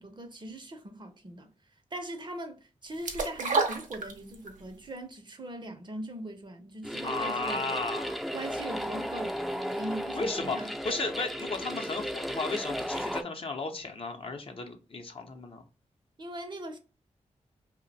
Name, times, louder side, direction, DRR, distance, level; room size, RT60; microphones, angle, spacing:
voice 1, 0.0-1.5 1.9-7.8 8.3-10.8 16.2-16.8, right 1 dB, 40° right, 0.6 m, -40 dB
sound 1, 3.0-4.6 5.0-5.1, right 4 dB, 85° right, 0.6 m, -29 dB
sound 2, 6.8-13.2, equal, ahead, 0.4 m, -35 dB
voice 2, 7.0-8.2 10.1-10.6 10.8-15.6, left 3 dB, 45° left, 0.6 m, -34 dB
2.5 x 2.1 x 4.0 m
cardioid pair, 55°, 13 cm